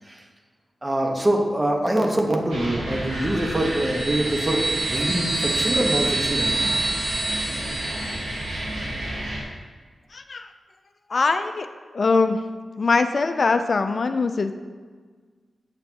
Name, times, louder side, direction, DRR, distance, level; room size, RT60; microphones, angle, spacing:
voice 1, 0.8-6.5, right 1 dB, 25° right, 2 dB, 1.2 m, -24 dB
sound 1, 2.5-9.4, right 1 dB, 90° right, 1.7 m, -31 dB
sound 2, 3.3-8.7, right 3 dB, 55° right, 2.1 m, -27 dB
voice 2, 10.1-10.5 11.1-11.7 11.9-12.4 12.8-14.5, left 4 dB, 60° left, 8 dB, 0.4 m, -22 dB
8.6 x 5.9 x 2.9 m, 1.5 s
supercardioid pair, 40°, 0 cm